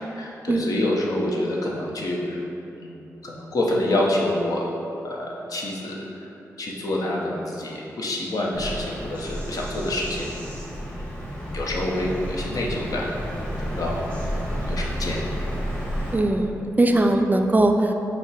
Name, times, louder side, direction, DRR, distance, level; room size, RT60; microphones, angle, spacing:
voice 1, 0.2-2.4 2.8-4.7 5.0-6.3 6.6-10.3 10.9-13.1 13.6-14.4 14.6-15.3, left 1 dB, 65° left, -2 dB, 0.7 m, -27 dB
Bird vocalization bird call bird song, 8.5-16.1, equal, 15° left, 1.3 m, -31 dB
voice 2, 16.1-17.9, right 2 dB, 25° right, 5 dB, 0.3 m, -20 dB
5.3 x 2.1 x 4.7 m, 2.9 s
supercardioid pair, 45°, 7 cm